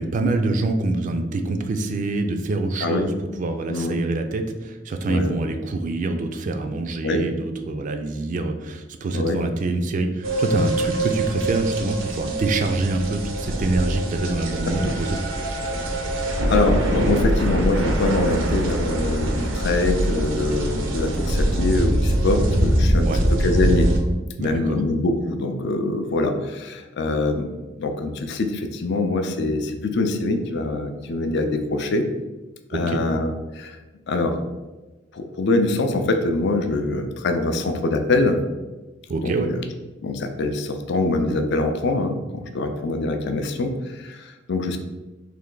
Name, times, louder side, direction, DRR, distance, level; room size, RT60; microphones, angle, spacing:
voice 1, 0.0-3.1 3.4-15.2 23.0-23.2 24.4-24.8 32.7-33.0 39.1-39.5, right 2 dB, 40° right, 5 dB, 0.3 m, -25 dB
voice 2, 3.7-4.0 5.1-5.4 7.0-7.2 9.1-9.4 14.7-14.8 16.5-23.9 24.4-27.5 27.8-32.1 32.7-33.8 34.1-34.4 35.1-38.4 39.2-39.6 40.0-44.8, left 2 dB, 60° left, 6 dB, 0.4 m, -24 dB
sound 1, 10.2-24.0, right 1 dB, 90° right, 0.6 m, -23 dB
3.3 x 2.9 x 3.8 m, 1.1 s
head